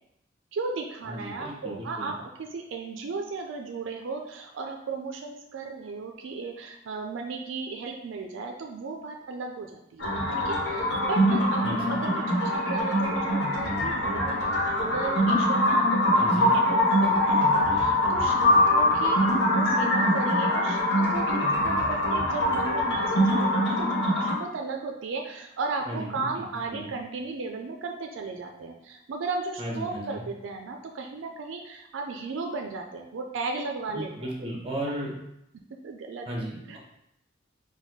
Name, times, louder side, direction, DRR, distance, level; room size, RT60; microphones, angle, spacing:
voice 1, 0.5-14.5 14.8-23.9 24.2-34.3 35.8-36.3 36.7-36.8, right 4 dB, 80° right, 3 dB, 0.4 m, -35 dB
voice 2, 1.1-2.1 11.6-12.0 16.1-16.5 25.9-26.3 26.7-26.9 29.6-30.2 33.9-35.1 36.3-36.8, right 1 dB, 30° right, -2 dB, 1.0 m, -35 dB
sound 1, 10.0-24.3, left 1 dB, 60° left, 1.1 m, -23 dB
4.0 x 2.2 x 4.6 m, 0.80 s
head